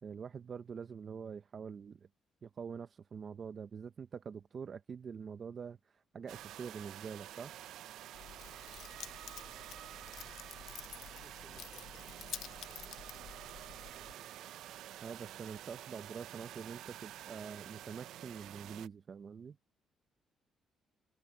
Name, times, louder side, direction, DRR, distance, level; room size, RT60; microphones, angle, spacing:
voice 1, 0.0-2.1 2.4-7.5 15.0-19.6, right 6 dB, 45° right, 0.8 m, -45 dB
sound 1, 6.3-18.9, right 13 dB, 80° right, 0.5 m, -49 dB
Keys jangling, 8.1-14.1, left 11 dB, 75° left, 0.6 m, -50 dB
voice 2, 9.0-13.7 13.9-14.7, right 3 dB, 20° right, 4.3 m, -66 dB
cardioid pair, 90°, 0 cm